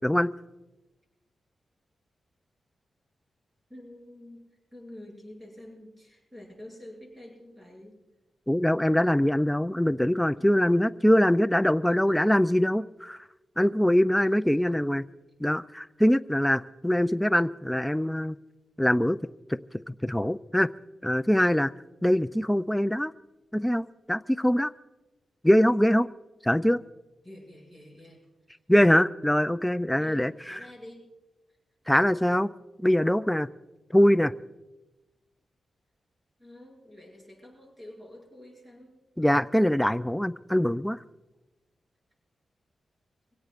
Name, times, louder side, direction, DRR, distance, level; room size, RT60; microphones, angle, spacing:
voice 1, 3.7-8.0 11.8-12.2 27.2-28.6 30.0-31.1 31.5-31.6 36.4-39.0, left 1 dB, 15° right, -2 dB, 7.2 m, -48 dB
voice 2, 8.5-13.2 13.6-15.1 15.4-18.4 18.8-19.2 19.5-19.6 19.9-20.7 21.0-21.7 22.0-23.1 23.5-24.7 25.4-26.1 26.4-26.8 28.7-30.3 31.9-32.5 32.8-33.5 33.9-34.3 39.2-41.0, equal, 5° left, 12 dB, 0.4 m, -23 dB
26.5 x 17.5 x 2.5 m, 1.1 s
wide cardioid pair, 110°, 0 cm